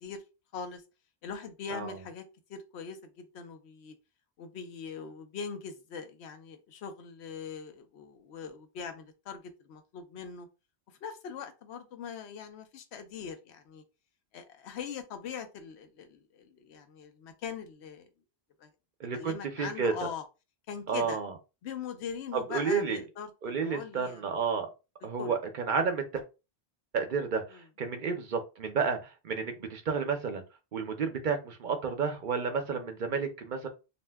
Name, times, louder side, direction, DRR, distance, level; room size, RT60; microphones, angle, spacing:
voice 1, 1.2-2.2 2.5-3.9 4.4-10.5 11.0-13.8 14.3-18.1 18.6-18.7 19.1-20.2 20.7-21.2 21.6-24.2 25.2-25.4 27.5-27.6, left 6 dB, 90° left, 8 dB, 0.9 m, -41 dB
voice 2, 19.0-19.9 20.9-21.3 22.3-23.0 23.4-24.7 25.0-26.2 26.9-30.4 30.7-33.7, right 5 dB, 55° right, 6 dB, 0.7 m, -31 dB
2.7 x 2.1 x 3.3 m, 0.28 s
omnidirectional pair, 1.1 m